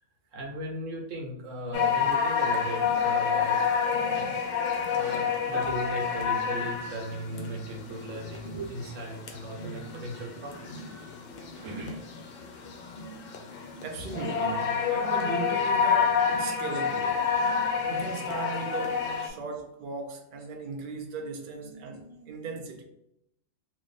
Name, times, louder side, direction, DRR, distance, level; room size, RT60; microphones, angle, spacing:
voice 1, 0.3-3.6 4.1-4.3 4.9-10.7 11.3-12.0 17.3-17.4 21.6-22.5, right 1 dB, 75° right, 1.3 m, -38 dB
sound 1, 1.7-19.3, left 6 dB, 55° left, 0.7 m, -29 dB
voice 2, 13.3-17.2 17.8-22.8, right 4 dB, 55° right, 0.6 m, -38 dB
3.0 x 2.6 x 3.9 m
omnidirectional pair, 1.4 m